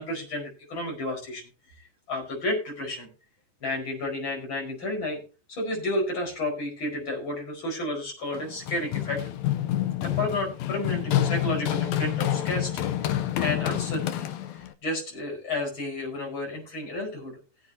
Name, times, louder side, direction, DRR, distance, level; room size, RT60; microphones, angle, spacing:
voice 1, 0.0-1.4 2.1-3.1 3.6-5.2 5.5-9.2 10.0-13.1 13.4-14.3 14.8-17.4, left 1 dB, 35° left, 0 dB, 5.6 m, -31 dB
Run, 8.3-14.7, left 12 dB, 75° left, 1.7 m, -28 dB
19.5 x 8.0 x 2.8 m, 0.34 s
omnidirectional pair, 3.9 m